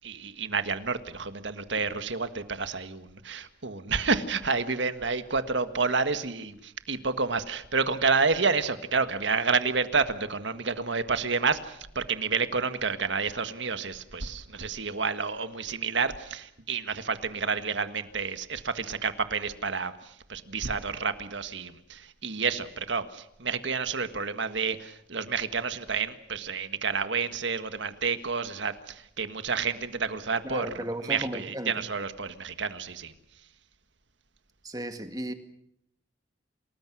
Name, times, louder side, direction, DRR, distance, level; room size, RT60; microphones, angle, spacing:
voice 1, 0.0-19.9 20.3-33.1, right 5 dB, 70° right, 1.7 m, -29 dB
voice 2, 30.4-31.8 34.6-35.3, right 1 dB, 20° right, 2.0 m, -35 dB
29.0 x 20.0 x 6.3 m
head